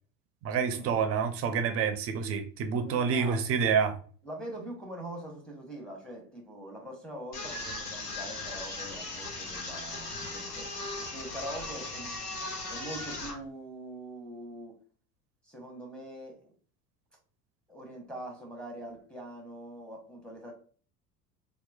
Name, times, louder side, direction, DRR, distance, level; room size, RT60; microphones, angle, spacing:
voice 1, 0.4-3.9, right 6 dB, 30° right, 0.4 m, -28 dB
voice 2, 2.7-3.4 4.2-12.2 12.7-14.8 15.4-16.5 17.7-20.5, right 1 dB, ahead, 0.8 m, -43 dB
sound 1, 7.3-13.4, left 2 dB, 85° left, 0.8 m, -38 dB
2.9 x 2.1 x 2.2 m
hypercardioid pair, 75°, 46 cm